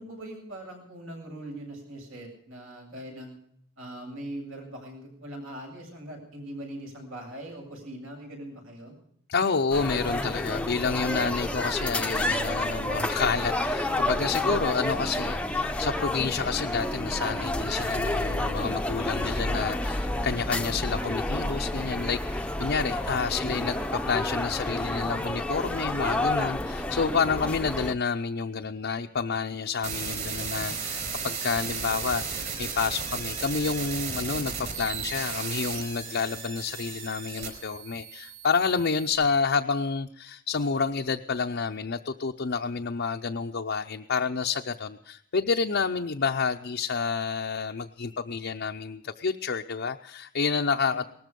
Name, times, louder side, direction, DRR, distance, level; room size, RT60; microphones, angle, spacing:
voice 1, 0.0-3.4 3.8-8.9 23.2-23.6 50.9-51.1, right 1 dB, 75° right, 2 dB, 7.9 m, -41 dB
voice 2, 9.3-51.1, left 5 dB, 50° left, 3 dB, 0.6 m, -29 dB
sound 1, 9.7-27.9, left 1 dB, 5° left, 0.7 m, -29 dB
sound 2, 29.8-39.1, right 6 dB, 35° right, 4.5 m, -35 dB
19.0 x 14.0 x 5.3 m, 0.66 s
head